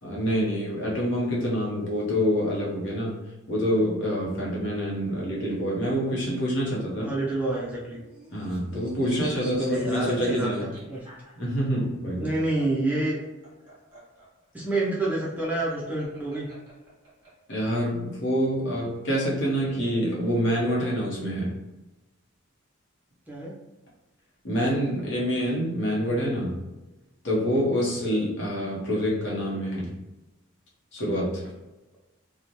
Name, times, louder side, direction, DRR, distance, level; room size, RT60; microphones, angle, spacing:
voice 1, 0.0-3.2 3.5-7.1 8.3-10.7 11.4-12.3 17.5-21.6 24.4-26.6 27.2-29.9 30.9-31.4, equal, 55° left, -4 dB, 0.8 m, -26 dB
voice 2, 7.0-8.0 9.7-11.1 12.2-13.2 14.5-16.5 23.3-23.5, right 2 dB, 10° right, -5 dB, 0.4 m, -28 dB
sound 1, 7.8-11.8 13.1-17.3, right 1 dB, 25° right, 1.2 m, -48 dB
2.9 x 2.1 x 2.6 m, 1.0 s
head